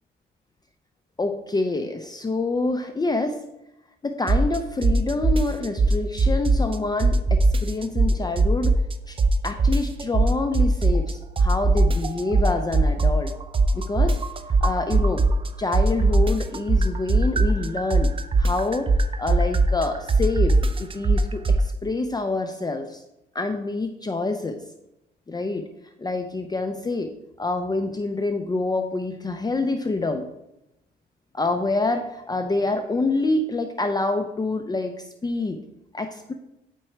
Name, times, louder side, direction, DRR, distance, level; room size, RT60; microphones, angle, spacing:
voice 1, 1.2-3.4 4.0-8.8 9.1-9.2 9.4-13.3 13.7-14.2 14.6-15.3 15.6-18.1 18.4-18.9 19.2-23.0 23.3-24.6 25.3-25.7 26.0-27.1 27.4-30.3 31.3-35.6 35.9-36.3, left 3 dB, 20° left, 6 dB, 0.6 m, -26 dB
sound 1, 4.3-4.6 4.8-6.7 7.0-8.9 9.2-11.1 11.4-15.5 15.7-21.6, right 2 dB, 25° right, 0.5 m, -19 dB
9.0 x 4.5 x 4.4 m, 0.87 s
cardioid pair, 90°, 20 cm